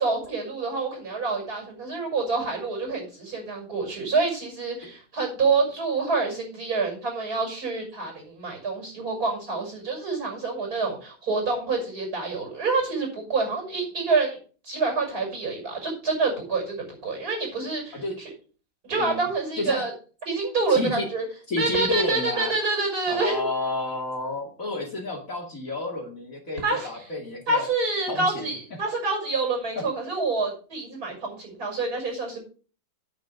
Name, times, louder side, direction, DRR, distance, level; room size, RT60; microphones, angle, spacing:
voice 1, 0.0-14.4 14.6-18.3 18.8-19.9 20.2-21.2 21.6-23.4 26.6-27.1 27.5-32.4, right 3 dB, 50° right, 1 dB, 6.6 m, -27 dB
voice 2, 20.7-21.1 21.5-22.5 23.1-27.6 28.1-28.5, left 2 dB, 45° left, 0 dB, 2.6 m, -30 dB
9.3 x 8.9 x 5.1 m, 0.37 s
omnidirectional pair, 2.1 m